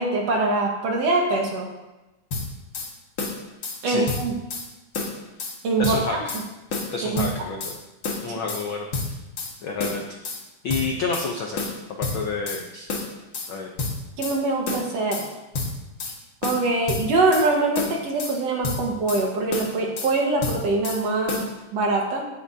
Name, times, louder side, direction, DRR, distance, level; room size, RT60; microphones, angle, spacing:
voice 1, 0.0-1.7 3.8-4.3 5.6-6.2 7.0-7.3 14.2-15.3 16.4-21.4 21.7-22.3, right 2 dB, 60° right, 0 dB, 2.4 m, -23 dB
sound 1, 2.3-2.9 3.2-3.8 4.1-4.7 4.9-5.6 5.8-6.4 6.7-7.8 8.0-8.6 8.9-9.5 9.8-10.4 10.7-11.3 11.6-12.6 12.9-13.5 13.8-14.4 14.7-15.3 15.5-16.2 16.4-17.5 17.7-18.4 18.6-19.2 19.5-20.1 20.4-21.0 21.3-21.5, left 3 dB, 45° left, 1.8 m, -29 dB
voice 2, 5.8-6.4 6.9-7.8 8.2-9.2 9.6-10.0 10.6-12.9 13.5-13.7, left 4 dB, 80° left, 1 dB, 1.1 m, -30 dB
16.5 x 9.9 x 2.8 m, 1.0 s
omnidirectional pair, 3.5 m